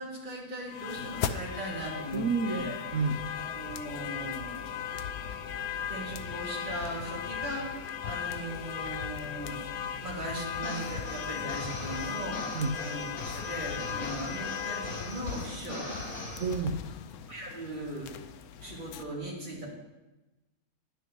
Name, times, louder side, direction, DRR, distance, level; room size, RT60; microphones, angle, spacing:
voice 1, 0.0-2.8 3.3-4.8 5.9-9.7 10.0-15.9 17.3-18.1 18.6-19.7, right 1 dB, 35° right, -4 dB, 2.5 m, -39 dB
sound 1, 0.7-19.0, left 8 dB, 85° left, 1.1 m, -37 dB
voice 2, 2.1-3.2 12.5-12.8 16.4-16.8, right 4 dB, 65° right, 4 dB, 1.0 m, -29 dB
sound 2, 10.5-16.5, left 2 dB, 55° left, 2.2 m, -41 dB
10.5 x 9.9 x 3.0 m, 1.1 s
omnidirectional pair, 1.5 m